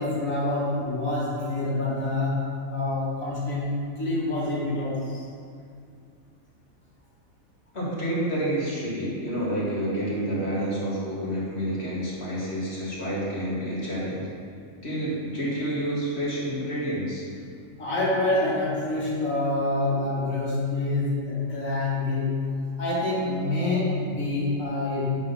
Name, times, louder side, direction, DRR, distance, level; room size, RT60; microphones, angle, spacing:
voice 1, 0.0-5.2 17.8-22.5 22.8-25.0, left 2 dB, 80° left, -7 dB, 2.4 m, -26 dB
voice 2, 7.7-14.2 14.8-17.2, right 1 dB, 50° left, -7 dB, 2.3 m, -29 dB
9.0 x 3.7 x 5.5 m, 2.3 s
omnidirectional pair, 1.4 m